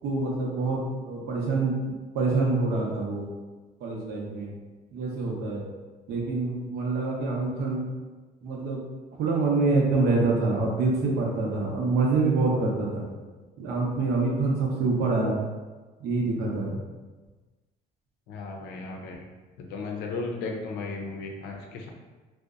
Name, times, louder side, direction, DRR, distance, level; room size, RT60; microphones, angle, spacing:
voice 1, 0.0-3.3 3.8-4.5 4.9-5.6 6.1-7.8 8.4-8.8 9.2-13.0 13.6-15.4 16.0-16.8, right 3 dB, 70° right, -2 dB, 0.7 m, -26 dB
voice 2, 18.3-19.2 19.7-21.9, left 3 dB, 80° left, 1 dB, 0.5 m, -35 dB
2.7 x 2.1 x 2.4 m, 1.3 s
cardioid pair, 110°, 17 cm